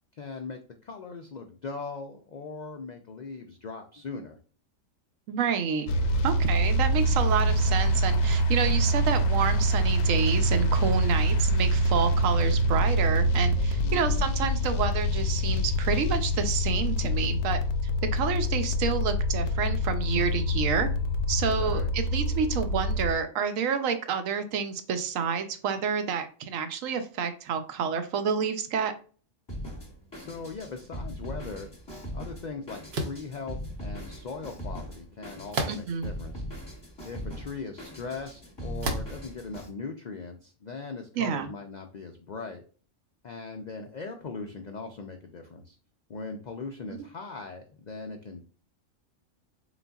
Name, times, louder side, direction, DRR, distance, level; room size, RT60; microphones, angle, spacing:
voice 1, 0.1-4.4 13.8-14.3 21.5-21.9 30.1-31.7 32.1-36.4 37.0-42.6 43.2-45.8 46.1-48.4, left 4 dB, 85° left, 0.3 m, -40 dB
voice 2, 5.3-5.9 6.2-17.6 18.1-20.9 21.3-28.9 35.7-36.1 41.2-41.5, right 6 dB, 80° right, 1.0 m, -29 dB
sound 1, 5.9-23.1, equal, 65° left, 0.7 m, -25 dB
Drum kit, 29.5-39.7, equal, 20° left, 1.0 m, -40 dB
sound 2, 32.9-33.3 35.5-36.1 36.8-36.9 38.8-39.2, right 2 dB, 60° right, 0.9 m, -31 dB
4.0 x 3.9 x 2.3 m
omnidirectional pair, 1.4 m